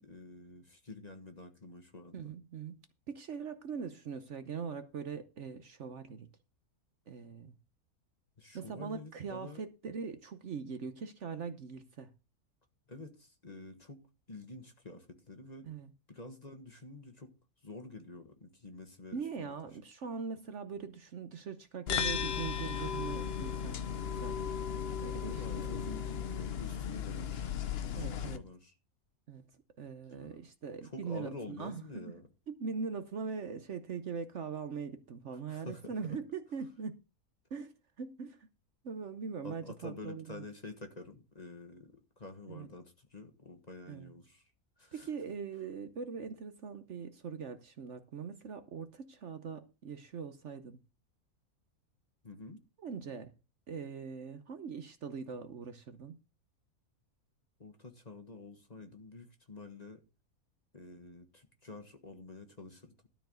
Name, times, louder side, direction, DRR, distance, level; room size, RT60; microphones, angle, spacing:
voice 1, 0.0-2.3 8.4-9.6 12.9-15.7 16.1-17.3 17.6-19.5 25.2-27.4 27.9-28.7 30.2-30.3 30.8-32.3 35.5-36.2 39.4-44.5 44.8-45.1 52.2-52.6 57.6-60.0 60.7-63.1, left 2 dB, 30° left, 1.5 m, -48 dB
voice 2, 2.1-2.8 3.1-6.3 7.1-7.5 8.5-12.1 15.7-15.9 19.1-24.4 25.0-25.7 27.9-28.4 29.3-29.4 29.8-32.1 32.5-37.0 37.5-38.5 38.8-40.5 42.5-42.7 43.9-44.1 44.9-50.8 52.8-53.3 53.7-56.2, right 5 dB, 55° right, 1.1 m, -41 dB
sound 1, 21.9-28.4, left 8 dB, 50° left, 0.8 m, -36 dB
13.0 x 4.6 x 7.6 m
omnidirectional pair, 1.6 m